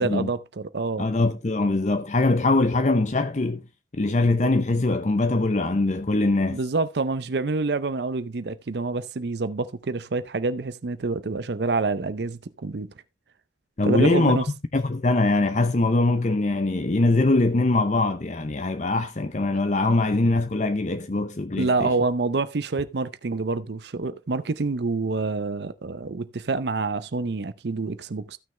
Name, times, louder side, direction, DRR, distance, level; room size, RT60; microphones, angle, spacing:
voice 1, 0.0-1.1 4.7-4.8 6.5-12.9 13.8-14.5 21.6-28.4, right 3 dB, 70° right, 0.6 m, -27 dB
voice 2, 1.0-3.6 4.0-6.6 13.8-14.4 14.7-21.9, left 2 dB, 40° left, 0.8 m, -22 dB
15.0 x 6.2 x 3.2 m
head